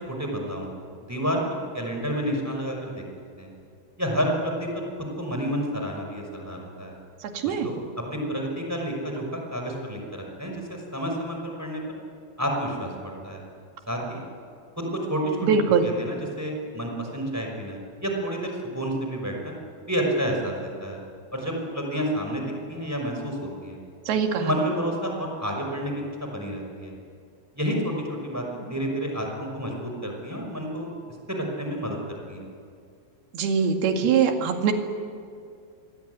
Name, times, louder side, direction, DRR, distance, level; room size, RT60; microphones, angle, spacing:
voice 1, 0.1-1.4 1.7-3.0 3.4-3.5 4.0-4.8 5.2-6.9 7.4-7.8 8.1-11.8 12.4-13.4 13.9-14.2 14.8-15.5 15.8-19.5 19.9-21.0 21.3-23.8 24.3-26.9 27.6-30.9 31.3-32.0 32.3-32.4, equal, 5° right, 2 dB, 5.4 m, -30 dB
voice 2, 7.2-7.7 15.4-15.9 24.1-24.5 33.3-34.7, right 6 dB, 70° right, 4 dB, 3.9 m, -22 dB
27.5 x 22.0 x 9.6 m, 2.3 s
omnidirectional pair, 4.8 m